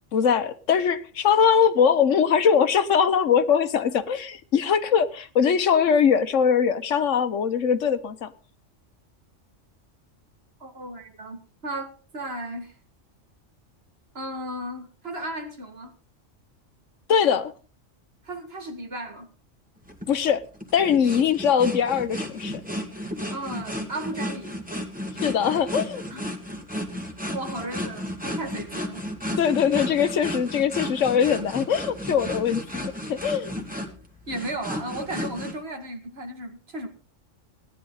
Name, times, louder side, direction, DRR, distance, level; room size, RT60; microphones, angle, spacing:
voice 1, 0.1-8.3 17.1-17.5 20.1-20.4 20.7-22.6 25.2-26.0 29.4-33.5, left 7 dB, 80° left, 1.3 m, -21 dB
voice 2, 10.6-12.8 14.1-15.9 18.2-19.3 23.3-24.6 26.1-26.3 27.3-29.0 32.3-32.4 33.8-33.9 34.3-36.9, right 1 dB, 55° right, 2.3 m, -35 dB
sound 1, 19.9-35.5, equal, 5° right, 2.1 m, -33 dB
17.5 x 11.0 x 4.0 m
omnidirectional pair, 1.3 m